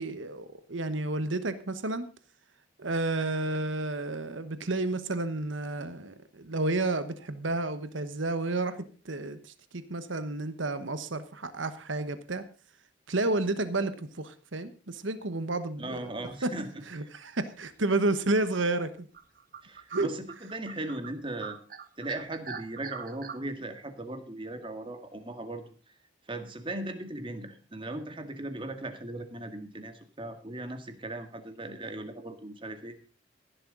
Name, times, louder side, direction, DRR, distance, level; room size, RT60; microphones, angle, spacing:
voice 1, 0.0-2.1 2.8-12.4 13.1-16.1 16.4-16.5 16.9-19.1 19.9-20.1, right 2 dB, 80° right, 11 dB, 1.2 m, -31 dB
voice 2, 15.8-16.8 19.6-21.6 22.0-25.6 26.3-32.9, right 1 dB, 25° right, 8 dB, 1.8 m, -38 dB
sound 1, 17.8-18.2 18.7-18.8 19.1-21.1 21.4-23.4, right 6 dB, 45° right, 1.2 m, -42 dB
16.0 x 11.5 x 3.9 m, 0.36 s
head